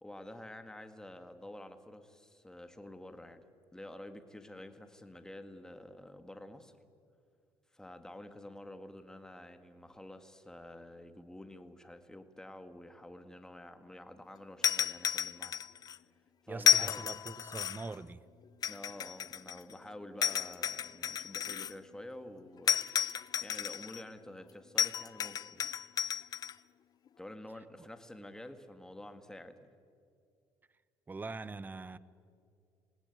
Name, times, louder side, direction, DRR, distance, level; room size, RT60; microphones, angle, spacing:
voice 1, 0.0-3.4 3.7-6.7 7.7-15.6 16.4-17.0 18.7-22.8 23.4-25.7 27.2-29.7, left 1 dB, 5° left, 1.9 m, -49 dB
sound 1, 14.6-16.0 16.6-17.9 18.6-19.7 20.2-21.7 22.7-24.0 24.8-26.5, left 8 dB, 40° left, 0.5 m, -32 dB
voice 2, 16.5-18.2 27.8-27.9 31.1-32.0, right 3 dB, 20° right, 0.9 m, -43 dB
27.0 x 18.5 x 9.4 m
cardioid pair, 100°, 10 cm